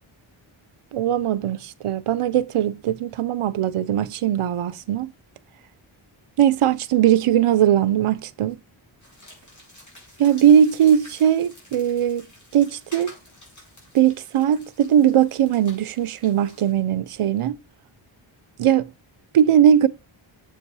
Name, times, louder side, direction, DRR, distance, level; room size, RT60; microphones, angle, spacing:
voice 1, 0.9-5.1 6.4-8.6 10.2-12.3 12.5-13.2 13.9-17.6 18.6-18.9 19.3-19.9, right 10 dB, 85° right, 0.7 m, -19 dB
sound 1, 9.0-16.7, left 1 dB, 35° left, 4.6 m, -49 dB
7.4 x 5.5 x 4.7 m
wide cardioid pair, 150°, 49 cm